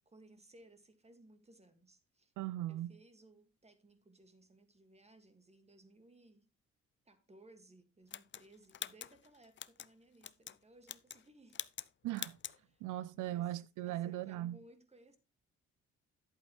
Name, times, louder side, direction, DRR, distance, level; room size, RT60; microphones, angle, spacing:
voice 1, 0.0-2.3 2.7-6.5 7.1-11.7 12.7-12.8 13.3-13.6 13.8-15.2, right 1 dB, 20° right, 2.0 m, -62 dB
voice 2, 2.4-2.9 12.0-12.4 12.8-14.6, right 14 dB, 80° right, 0.5 m, -38 dB
sound 1, 8.1-9.9 10.2-10.6 10.8-11.2 11.5-11.9 12.1-12.6, left 9 dB, 40° left, 0.6 m, -45 dB
11.5 x 8.3 x 3.2 m
cardioid pair, 90°, 30 cm